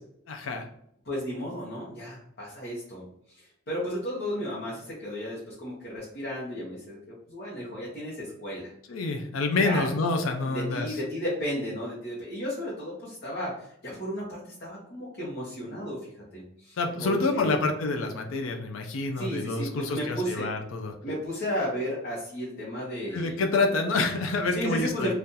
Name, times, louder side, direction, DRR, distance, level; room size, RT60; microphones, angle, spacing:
voice 1, 0.3-0.7 8.9-11.0 16.8-20.9 23.1-25.1, left 3 dB, 70° left, 5 dB, 0.4 m, -27 dB
voice 2, 1.0-3.0 3.3-7.0 7.3-8.7 9.6-9.9 10.5-17.6 19.2-20.5 21.0-23.4 24.5-25.1, equal, 50° left, -6 dB, 0.9 m, -34 dB
3.7 x 2.4 x 2.7 m, 0.72 s
head